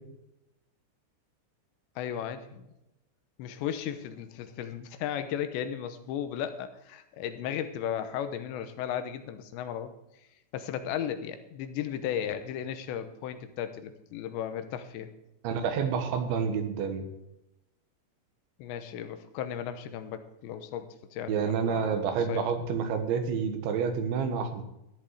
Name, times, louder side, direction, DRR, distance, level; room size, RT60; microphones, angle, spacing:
voice 1, 2.0-2.7 3.4-9.9 10.5-15.1 18.6-22.0 22.3-22.6, left 9 dB, 85° left, 9 dB, 3.2 m, -35 dB
voice 2, 15.4-17.0 21.3-24.6, right 6 dB, 90° right, 7 dB, 3.8 m, -29 dB
13.5 x 10.5 x 4.9 m, 0.89 s
omnidirectional pair, 5.1 m